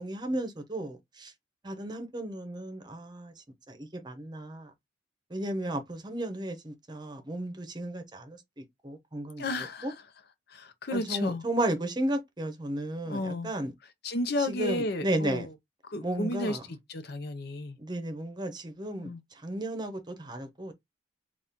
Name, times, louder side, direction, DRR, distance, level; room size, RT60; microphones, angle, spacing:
voice 1, 0.0-1.3 1.6-4.7 5.3-9.4 9.8-9.9 10.9-13.7 14.4-15.5 16.0-16.6 17.8-20.7, right 1 dB, 25° right, 0.8 m, -34 dB
voice 2, 9.4-9.9 10.5-11.4 13.0-13.5 14.0-15.5 15.9-17.8 19.0-19.2, left 2 dB, 60° left, 0.7 m, -33 dB
4.1 x 2.4 x 3.6 m
head